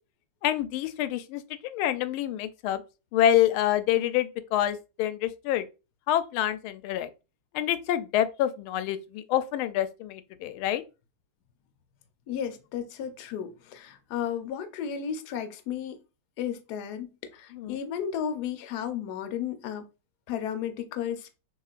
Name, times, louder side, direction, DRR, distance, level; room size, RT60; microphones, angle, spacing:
voice 1, 0.4-2.8 3.1-5.7 6.1-7.1 7.5-10.8 17.5-17.8, left 11 dB, 85° left, 1.4 m, -27 dB
voice 2, 12.3-16.0 16.4-19.8 20.3-21.3, left 8 dB, 65° left, 1.0 m, -33 dB
6.6 x 2.9 x 2.4 m
omnidirectional pair, 2.3 m